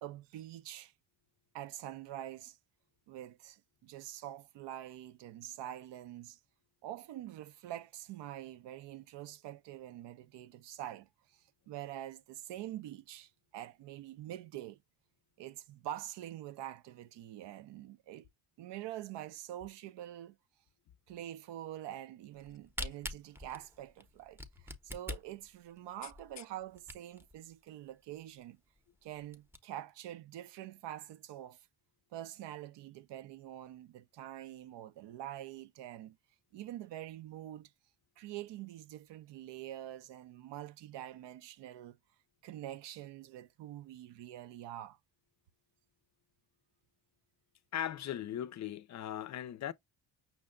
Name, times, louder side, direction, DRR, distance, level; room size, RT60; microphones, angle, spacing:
voice 1, 0.0-0.9 1.5-2.6 3.1-6.4 6.8-14.8 15.4-18.3 18.6-20.4 21.1-28.6 29.0-31.7 32.1-36.2 36.5-37.7 38.2-42.0 42.4-45.0, right 12 dB, 85° right, 0.6 m, -45 dB
Camera, 22.4-27.3 27.9-28.0 28.2-28.3 28.7-28.8 29.2-29.6, left 1 dB, 5° right, 0.6 m, -43 dB
voice 2, 47.7-49.7, left 10 dB, 45° left, 0.4 m, -38 dB
5.9 x 2.1 x 3.6 m
cardioid pair, 135°, 41 cm